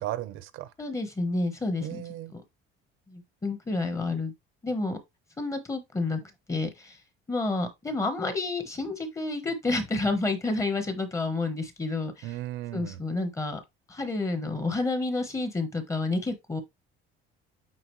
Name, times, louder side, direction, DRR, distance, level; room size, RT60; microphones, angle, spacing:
voice 1, 0.0-0.7 1.8-2.3 12.2-13.0, right 14 dB, 70° right, 0.8 m, -35 dB
voice 2, 0.8-2.0 2.3-2.4 3.1-4.3 4.6-5.0 5.4-7.0 7.3-12.3 12.7-13.6 13.9-16.6, left 3 dB, 15° left, 1.1 m, -30 dB
8.5 x 4.0 x 3.1 m
cardioid pair, 175°, 21 cm